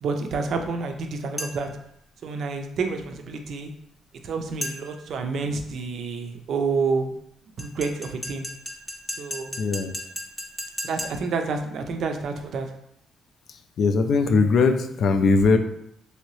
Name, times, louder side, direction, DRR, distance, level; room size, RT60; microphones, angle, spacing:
voice 1, 0.0-1.7 2.2-3.7 4.2-7.1 7.6-8.5 9.2-9.6 10.8-12.7, right 4 dB, 65° right, 5 dB, 0.4 m, -29 dB
sound 1, 1.4-1.8 4.6-5.1 7.6-11.4, left 1 dB, 15° left, 0.6 m, -36 dB
voice 2, 9.6-10.0 13.5-15.6, left 4 dB, 65° left, 7 dB, 0.3 m, -20 dB
3.1 x 2.7 x 3.0 m, 0.75 s
cardioid pair, 90°, 0 cm